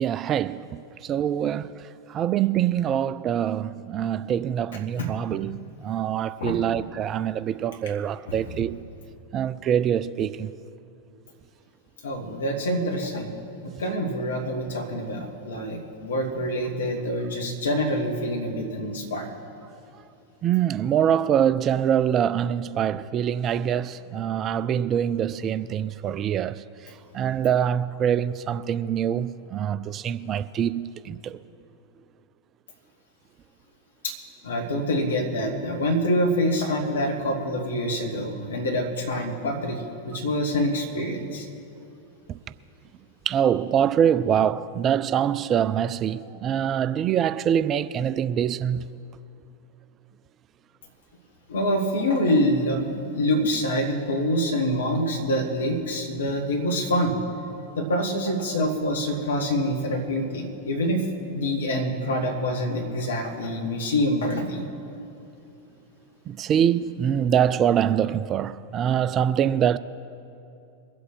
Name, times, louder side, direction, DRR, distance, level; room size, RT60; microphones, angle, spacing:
voice 1, 0.0-1.8 2.1-8.8 9.3-10.5 20.4-26.6 27.1-31.4 42.3-42.4 43.3-48.8 66.3-69.8, right 9 dB, 30° right, 0.3 m, -24 dB
voice 2, 12.0-13.3 13.6-19.3 34.0-34.1 34.4-41.5 51.5-57.1 57.8-61.0 61.3-64.6, equal, 65° left, 1.9 m, -26 dB
22.5 x 7.9 x 4.7 m
figure-of-eight pair, 90°, 0 cm